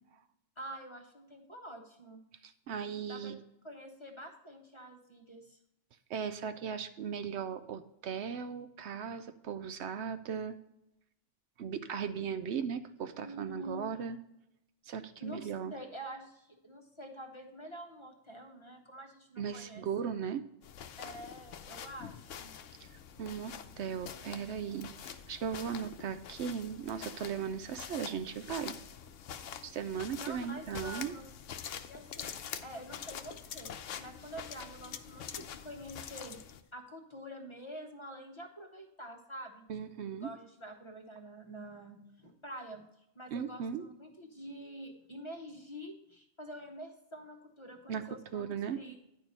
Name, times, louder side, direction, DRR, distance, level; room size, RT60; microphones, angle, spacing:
voice 1, 0.6-2.2 3.1-3.3 3.6-5.6 13.2-13.8 15.2-19.8 21.0-22.5 30.2-31.3 31.9-32.3 32.6-33.7 34.0-36.4 36.7-42.9 43.1-49.0, right 1 dB, 25° left, 3 dB, 0.9 m, -47 dB
voice 2, 2.4-3.4 6.1-10.6 11.6-14.2 14.9-15.7 19.4-20.4 22.8-28.7 29.6-31.1 39.7-40.3 43.3-43.8 47.9-48.1 48.3-48.8, right 7 dB, 70° right, 10 dB, 0.8 m, -37 dB
sound 1, 20.6-36.6, left 8 dB, 85° left, 1.0 m, -46 dB
sound 2, 31.2-31.3 31.6-32.5 32.9-33.8 34.4-35.4 35.8-36.5, left 8 dB, 60° left, 0.7 m, -46 dB
10.5 x 4.6 x 5.3 m, 0.84 s
omnidirectional pair, 1.3 m